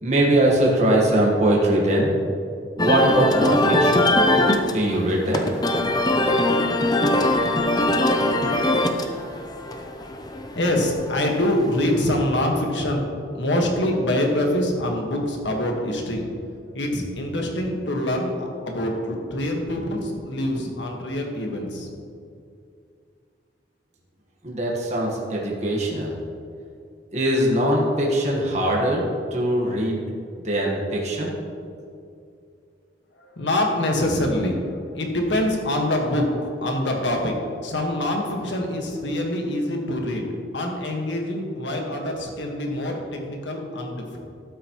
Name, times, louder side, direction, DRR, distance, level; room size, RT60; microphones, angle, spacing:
voice 1, 0.0-2.1 2.8-4.0 4.6-5.4 24.4-26.1 27.1-30.0 30.4-31.4, right 1 dB, 40° right, -2 dB, 1.4 m, -21 dB
sound 1, 2.8-12.2, left 1 dB, 20° left, 0.6 m, -22 dB
voice 2, 10.5-13.0 13.3-16.3 16.7-21.9 33.2-37.4 37.6-40.3 40.5-44.2, left 1 dB, 75° left, 1 dB, 1.6 m, -25 dB
12.0 x 9.0 x 3.1 m, 2.4 s
head